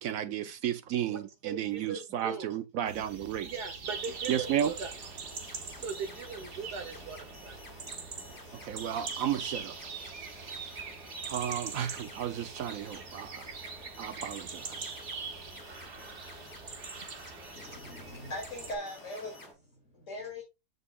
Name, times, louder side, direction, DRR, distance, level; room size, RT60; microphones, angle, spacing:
voice 1, 0.0-3.5 4.3-4.7 8.6-9.8 11.2-13.4 14.0-14.9, right 10 dB, 80° right, 0.7 m, -33 dB
voice 2, 1.1-2.6 2.9-3.0 3.4-4.9 5.2-8.7, right 5 dB, 60° right, 1.5 m, -41 dB
sound 1, 2.9-18.7, right 5 dB, 45° right, 1.5 m, -43 dB
sound 2, 3.8-19.5, equal, 55° left, 4.7 m, -52 dB
sound 3, 5.1-19.5, left 2 dB, 20° left, 0.5 m, -54 dB
voice 3, 17.5-19.5 19.7-20.4, left 1 dB, 40° left, 2.9 m, -40 dB
14.0 x 5.4 x 2.4 m
omnidirectional pair, 2.1 m